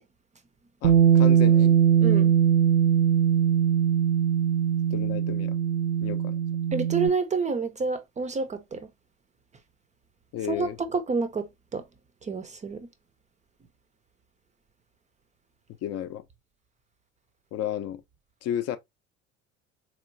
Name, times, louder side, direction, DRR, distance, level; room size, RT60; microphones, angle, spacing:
voice 1, 0.8-1.8 4.9-5.6 6.0-6.4 10.3-10.8 15.8-16.2 17.5-18.0 18.4-18.8, left 11 dB, 40° left, 0.6 m, -32 dB
Bass guitar, 0.8-7.1, right 8 dB, 65° right, 0.6 m, -21 dB
voice 2, 2.0-2.3 6.7-8.9 10.5-11.8 12.2-12.9, right 4 dB, 20° right, 0.5 m, -29 dB
4.2 x 3.0 x 2.6 m
figure-of-eight pair, 60°, 38 cm